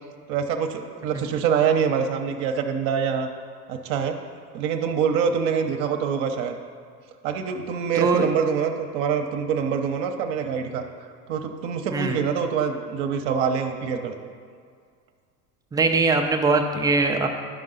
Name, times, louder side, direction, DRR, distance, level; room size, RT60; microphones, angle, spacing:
voice 1, 0.3-3.3 3.7-4.2 4.5-6.5 7.2-10.8 11.3-14.3, right 7 dB, 50° right, 4 dB, 0.8 m, -25 dB
voice 2, 7.9-8.3 11.9-12.2 15.7-17.3, right 3 dB, 10° right, 4 dB, 0.3 m, -21 dB
12.0 x 5.4 x 3.9 m, 2.1 s
figure-of-eight pair, 80°, 49 cm